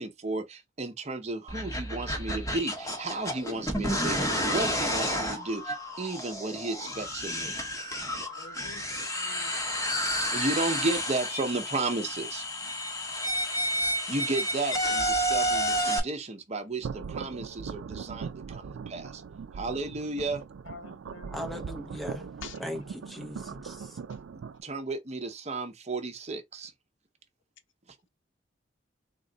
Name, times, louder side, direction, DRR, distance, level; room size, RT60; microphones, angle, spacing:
voice 1, 0.0-7.6 10.3-12.5 14.1-19.2 19.5-20.4 24.6-26.7, right 2 dB, 35° right, 0.7 m, -33 dB
sound 1, 1.5-16.0, equal, 15° left, 0.8 m, -30 dB
voice 2, 8.4-8.8 9.1-9.6 20.7-21.4 22.4-22.6, left 5 dB, 75° left, 0.5 m, -47 dB
sound 2, 16.8-24.6, right 6 dB, 90° right, 0.4 m, -40 dB
voice 3, 21.3-22.3 22.6-24.0, equal, ahead, 0.5 m, -38 dB
3.6 x 2.2 x 3.8 m
head